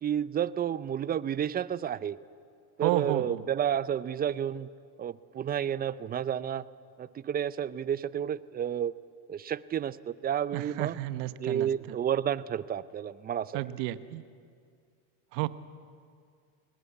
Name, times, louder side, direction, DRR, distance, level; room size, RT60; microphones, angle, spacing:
voice 1, 0.0-2.2 2.8-4.7 5.0-6.7 7.0-8.9 9.3-11.0 11.4-13.7, right 9 dB, 20° right, 17 dB, 0.5 m, -31 dB
voice 2, 2.8-3.4 10.5-11.7 13.5-14.2 15.3-15.5, right 16 dB, 60° right, 13 dB, 1.1 m, -31 dB
22.5 x 19.5 x 8.4 m, 2.2 s
supercardioid pair, 105°, 45 cm